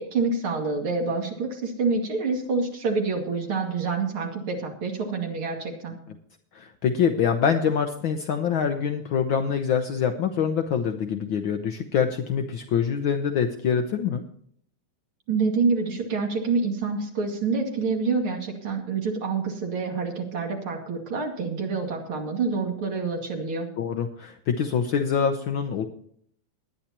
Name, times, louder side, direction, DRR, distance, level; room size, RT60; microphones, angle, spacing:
voice 1, 0.0-6.0 15.3-23.7, right 4 dB, 45° right, 1 dB, 3.0 m, -27 dB
voice 2, 6.5-14.2 23.8-25.8, left 7 dB, 85° left, 6 dB, 1.1 m, -25 dB
21.0 x 9.9 x 2.9 m, 0.64 s
omnidirectional pair, 3.3 m